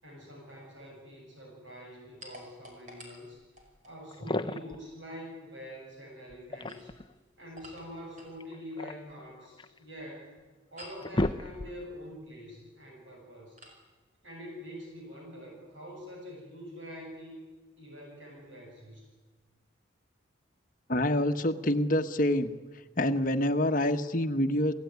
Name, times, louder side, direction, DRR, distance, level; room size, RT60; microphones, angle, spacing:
voice 1, 0.0-3.4 3.9-6.9 7.4-10.4 10.7-13.6 14.2-17.4 17.8-19.1, equal, 70° right, 0 dB, 7.4 m, -45 dB
sound 1, 2.2-4.0 6.5-8.4 10.8-11.1 13.6-13.8, equal, 40° right, 5.6 m, -51 dB
sound 2, 3.7-3.8 4.1-4.8 6.3-7.1 8.4-9.8 10.4-10.5 10.8-12.0, left 1 dB, 25° left, 0.8 m, -34 dB
voice 2, 20.9-22.5 23.0-24.7, left 1 dB, 40° left, 7 dB, 1.3 m, -26 dB
28.5 x 18.0 x 9.5 m, 1.3 s
head